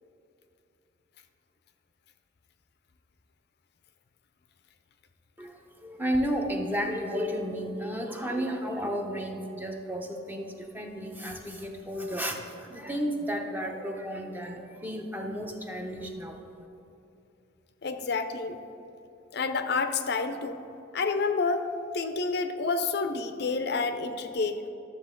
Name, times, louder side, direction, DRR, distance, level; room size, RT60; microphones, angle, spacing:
voice 1, 6.0-10.5 10.7-12.3 12.7-16.3, equal, 10° right, 2 dB, 0.7 m, -32 dB
voice 2, 17.8-18.6 19.3-20.6 20.9-21.6 21.9-24.6, left 4 dB, 55° left, 8 dB, 0.5 m, -29 dB
12.5 x 7.2 x 3.7 m, 2.7 s
head